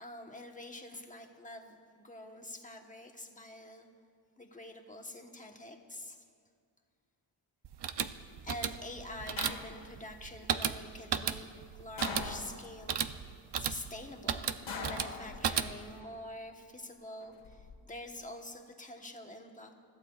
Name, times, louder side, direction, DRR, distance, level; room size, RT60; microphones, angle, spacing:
voice 1, 0.0-3.9 4.4-6.2 8.4-19.8, left 1 dB, 15° left, 2 dB, 1.1 m, -47 dB
sound 1, 7.6-16.0, right 8 dB, 60° right, 0.6 m, -35 dB
sound 2, 9.4-10.1 12.0-12.9 14.7-15.8 17.2-17.7, left 4 dB, 80° left, 1.6 m, -42 dB
28.5 x 15.0 x 2.4 m, 2.2 s
wide cardioid pair, 145°, 47 cm